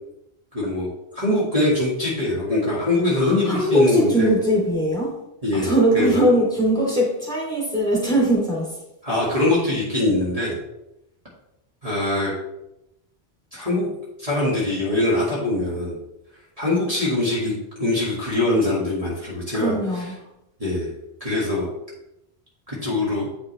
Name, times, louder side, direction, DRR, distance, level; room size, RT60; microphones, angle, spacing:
voice 1, 0.5-4.3 5.4-6.2 9.0-10.6 11.8-12.3 13.5-13.9 14.2-16.0 16.6-17.5 17.8-20.1 20.6-20.9 21.2-21.7 22.7-23.3, left 2 dB, 35° right, -7 dB, 1.9 m, -23 dB
voice 2, 3.2-5.1 5.5-8.7 18.3-18.4 19.5-20.1, right 1 dB, 5° left, -5 dB, 2.7 m, -21 dB
8.3 x 5.9 x 3.2 m, 0.86 s
omnidirectional pair, 1.1 m